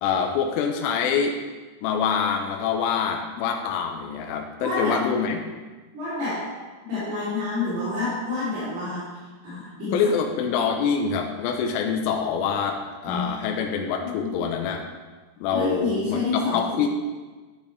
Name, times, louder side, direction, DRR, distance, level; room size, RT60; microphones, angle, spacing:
voice 1, 0.0-1.4 1.8-5.4 9.9-14.8 15.4-16.9, left 6 dB, 85° left, 3 dB, 3.2 m, -25 dB
voice 2, 4.6-5.0 5.9-6.5 6.8-9.2 9.4-10.0 13.0-13.3 14.0-14.3 15.5-16.9, left 3 dB, 55° right, -12 dB, 5.3 m, -28 dB
10.5 x 9.5 x 3.4 m, 1.3 s
omnidirectional pair, 5.8 m